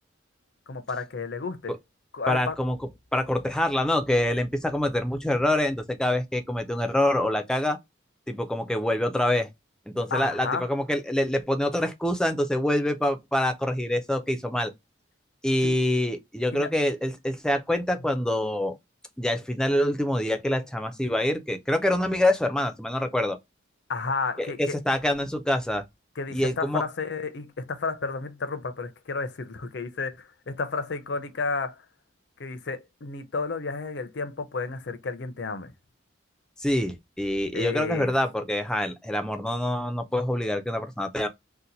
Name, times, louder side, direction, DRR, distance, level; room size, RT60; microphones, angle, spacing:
voice 1, 0.7-1.8 2.1-2.6 10.1-10.7 15.6-15.8 16.5-16.7 23.9-24.8 26.2-31.8 32.4-35.7 37.5-38.1, left 4 dB, 60° left, 0.5 m, -32 dB
voice 2, 2.3-2.8 3.1-7.8 8.3-9.5 9.9-14.7 15.4-18.8 19.2-23.4 24.4-25.8 26.3-26.8 36.6-41.3, left 1 dB, 5° left, 0.4 m, -26 dB
2.8 x 2.1 x 3.9 m
head